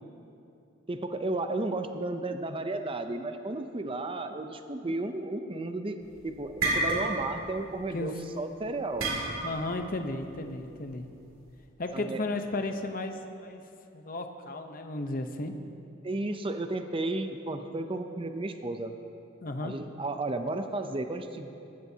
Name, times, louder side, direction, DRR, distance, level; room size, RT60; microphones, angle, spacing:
voice 1, 0.9-6.0 6.2-9.1 11.9-12.2 16.0-18.9 19.6-21.5, right 2 dB, 25° right, 7 dB, 0.6 m, -33 dB
sound 1, 6.0-8.0 9.0-9.7, right 2 dB, 85° right, 2.5 m, -29 dB
voice 2, 9.4-11.1 11.8-13.6 13.9-15.5 19.4-19.8, left 2 dB, 45° left, 6 dB, 0.8 m, -34 dB
20.5 x 14.0 x 2.8 m, 2.7 s
head